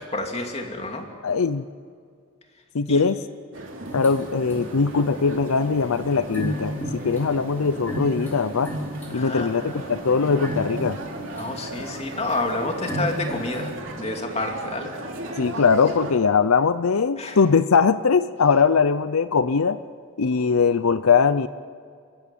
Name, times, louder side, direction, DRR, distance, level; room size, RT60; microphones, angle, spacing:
voice 1, 0.0-1.1 2.9-3.0 9.1-9.9 11.4-13.7 14.0-14.9 15.5-15.6 17.2-17.4, left 2 dB, 30° left, 3 dB, 2.8 m, -29 dB
voice 2, 1.2-1.6 2.7-3.2 3.9-6.7 7.0-8.7 9.1-11.0 15.4-19.8 20.2-21.5, left 5 dB, 80° left, 14 dB, 0.6 m, -21 dB
sound 1, 3.5-16.1, right 1 dB, 60° right, 3.1 m, -36 dB
sound 2, 3.9-13.8, equal, 10° left, 4.9 m, -35 dB
28.5 x 15.5 x 9.2 m, 2.2 s
head